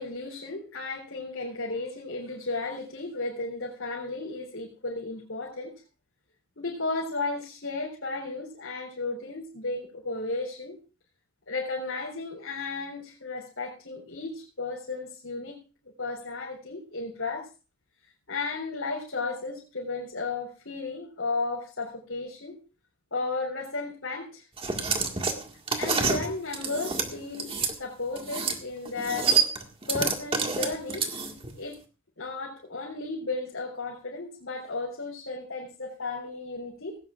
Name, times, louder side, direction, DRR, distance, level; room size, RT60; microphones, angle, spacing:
voice 1, 0.0-5.7 6.6-10.8 11.5-15.6 16.0-17.5 18.3-22.6 23.1-24.4 25.7-27.5 27.8-29.3 29.9-31.1 31.6-31.8 32.2-37.0, left 3 dB, 75° left, -5 dB, 3.7 m, -34 dB
sound 1, 24.6-27.7 28.2-28.6 28.9-31.5, right 5 dB, 30° right, 1.9 m, -27 dB
18.0 x 17.0 x 2.5 m, 0.35 s
head